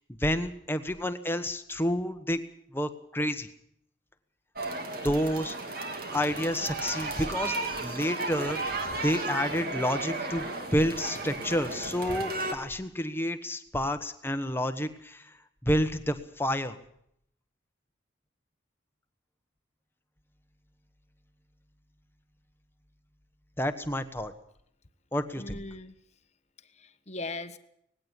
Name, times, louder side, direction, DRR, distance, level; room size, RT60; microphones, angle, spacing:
voice 1, 0.1-2.4 2.7-3.5 5.0-5.6 6.1-7.6 7.8-10.5 10.7-15.3 15.6-16.8 23.6-24.3 25.1-25.6, equal, 10° left, 9 dB, 1.2 m, -29 dB
Generic Crowd Noise, 4.6-12.5, right 2 dB, 50° right, 2.6 m, -34 dB
voice 2, 25.3-25.9 26.6-27.6, left 2 dB, 35° left, 10 dB, 1.2 m, -39 dB
19.0 x 16.5 x 8.2 m, 0.72 s
head